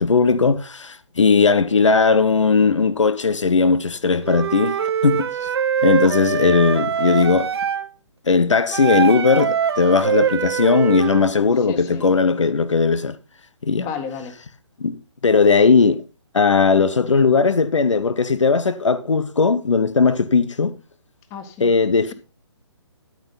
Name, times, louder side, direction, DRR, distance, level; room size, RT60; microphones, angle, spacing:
voice 1, 0.0-4.7 5.0-5.5 5.8-7.5 8.3-13.2 13.6-13.9 14.8-15.0 15.2-16.0 16.3-20.7 21.6-22.1, left 4 dB, 80° left, 1.0 m, -17 dB
Wind instrument woodwind instrument, 4.2-7.9 8.7-11.3, right 7 dB, 55° right, 1.0 m, -23 dB
voice 2, 11.6-12.1 13.8-14.4 21.3-21.7 22.1-22.2, left 7 dB, 20° left, 1.7 m, -32 dB
13.5 x 8.3 x 4.0 m
hypercardioid pair, 150°, 15 cm